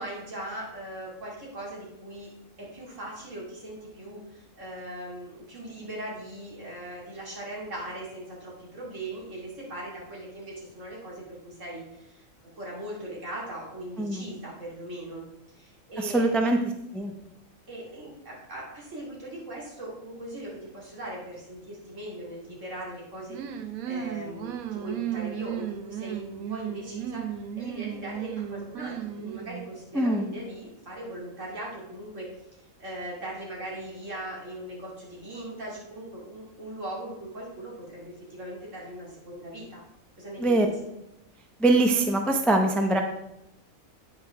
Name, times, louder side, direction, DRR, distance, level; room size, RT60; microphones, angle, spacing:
voice 1, 0.0-2.3 2.6-12.2 12.6-15.3 15.5-16.3 17.7-23.4 23.8-27.3 27.6-32.3 32.8-39.8 40.2-40.7, right 1 dB, 60° right, -4 dB, 2.8 m, -39 dB
voice 2, 16.0-16.6 16.9-17.1 29.9-30.3 40.4-40.7 41.6-43.0, right 2 dB, ahead, 3 dB, 0.4 m, -23 dB
sound 1, 23.3-29.7, right 9 dB, 85° right, 1.1 m, -35 dB
9.3 x 5.1 x 4.7 m, 0.86 s
omnidirectional pair, 1.4 m